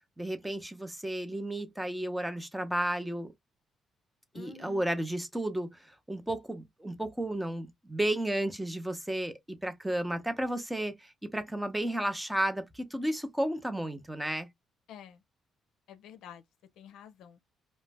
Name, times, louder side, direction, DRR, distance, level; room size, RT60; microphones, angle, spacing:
voice 1, 0.2-3.3 4.3-14.5, right 1 dB, 5° right, 0.6 m, -33 dB
voice 2, 4.3-4.8 14.9-15.2 15.9-16.4 16.8-17.4, left 8 dB, 85° left, 0.4 m, -49 dB
2.5 x 2.0 x 3.3 m
cardioid pair, 110°, 0 cm